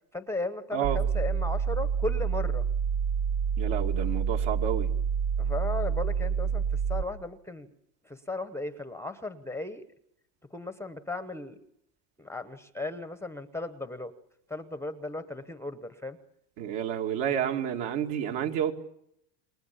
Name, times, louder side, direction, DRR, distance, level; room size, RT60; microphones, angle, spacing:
voice 1, 0.1-2.6 5.4-7.7 8.0-9.8 10.5-11.6 12.2-14.1 14.5-16.2, left 2 dB, 5° left, 11 dB, 0.9 m, -36 dB
sound 1, 0.8-7.0, right 7 dB, 85° right, 3.9 m, -28 dB
voice 2, 3.6-4.9 16.6-18.7, right 9 dB, 60° right, 3 dB, 2.7 m, -30 dB
28.5 x 22.5 x 7.1 m, 0.76 s
supercardioid pair, 135°, 48 cm